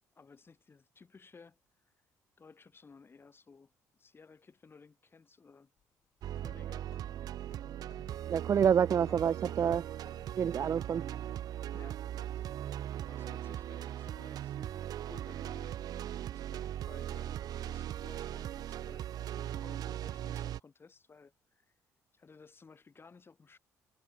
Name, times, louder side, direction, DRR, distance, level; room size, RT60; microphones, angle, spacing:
voice 1, 0.1-1.6 1.8-1.9 2.4-3.7 4.0-5.7 6.4-6.9 8.5-9.2 11.7-12.1 12.3-12.4 13.0-15.8 16.5-21.7 22.1-23.6, left 4 dB, 35° left, 5.8 m, -57 dB
sound 1, 5.8-12.6, left 10 dB, 65° left, 5.4 m, -64 dB
sound 2, 6.2-20.6, right 11 dB, 65° right, 2.1 m, -39 dB
voice 2, 8.3-9.8 10.4-11.0, right 8 dB, 45° right, 0.5 m, -28 dB
supercardioid pair, 75°, 7 cm